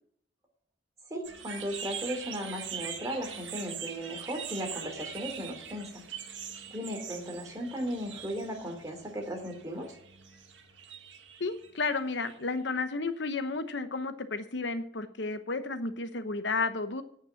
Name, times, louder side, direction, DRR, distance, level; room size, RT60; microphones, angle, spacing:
voice 1, 1.1-5.9 6.7-10.0, equal, 20° right, 3 dB, 3.1 m, -36 dB
sound 1, 1.2-12.7, right 8 dB, 85° right, 1.8 m, -43 dB
voice 2, 11.4-17.0, left 3 dB, 70° left, 10 dB, 1.0 m, -32 dB
9.4 x 9.0 x 7.1 m, 0.65 s
head